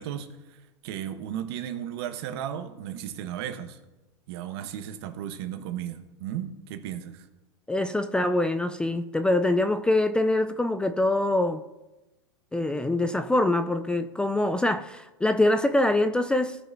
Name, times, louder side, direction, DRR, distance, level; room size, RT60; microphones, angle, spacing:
voice 1, 0.0-3.8 4.3-7.3, right 10 dB, 60° right, 10 dB, 1.1 m, -35 dB
voice 2, 7.7-11.6 12.5-16.6, left 1 dB, 5° left, 9 dB, 0.3 m, -24 dB
17.0 x 6.4 x 2.6 m, 1.1 s
hypercardioid pair, 110°, 15 cm